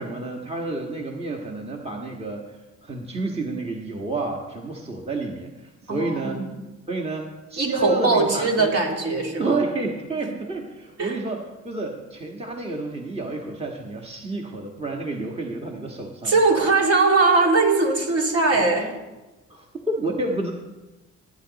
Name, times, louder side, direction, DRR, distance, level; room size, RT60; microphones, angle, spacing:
voice 1, 0.0-6.4 6.9-8.7 9.4-16.4 19.5-20.5, right 2 dB, 20° right, 0 dB, 1.6 m, -30 dB
voice 2, 5.9-6.5 7.6-9.6 11.0-11.2 16.2-18.9, right 3 dB, 55° right, -1 dB, 3.2 m, -20 dB
17.5 x 9.7 x 4.1 m, 1.1 s
cardioid pair, 90°, 30 cm